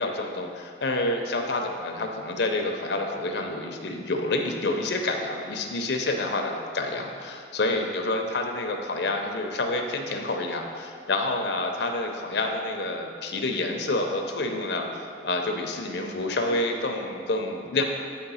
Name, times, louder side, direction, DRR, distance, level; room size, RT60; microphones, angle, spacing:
voice 1, 0.0-14.9 15.2-17.8, left 2 dB, 65° left, 3 dB, 0.7 m, -28 dB
8.9 x 3.3 x 5.6 m, 2.3 s
head